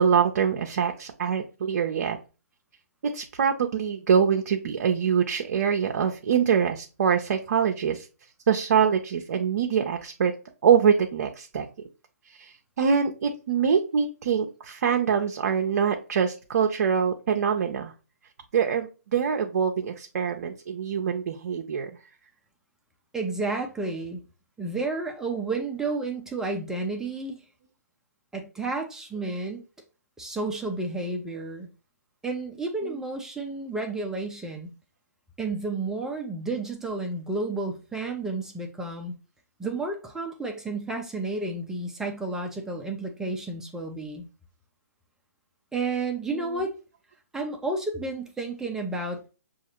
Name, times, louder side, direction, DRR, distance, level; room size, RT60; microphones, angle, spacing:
voice 1, 0.0-2.2 3.1-8.1 8.5-10.3 10.6-11.7 12.4-17.9 18.5-21.9, right 7 dB, 55° right, 4 dB, 0.6 m, -24 dB
voice 2, 23.1-24.2 24.6-27.4 28.3-29.6 30.2-31.7 32.2-34.7 35.4-39.1 39.6-44.3 45.7-46.8 47.3-49.3, right 3 dB, 5° right, 2 dB, 0.5 m, -31 dB
6.3 x 2.5 x 3.0 m, 0.33 s
hypercardioid pair, 140°, 9 cm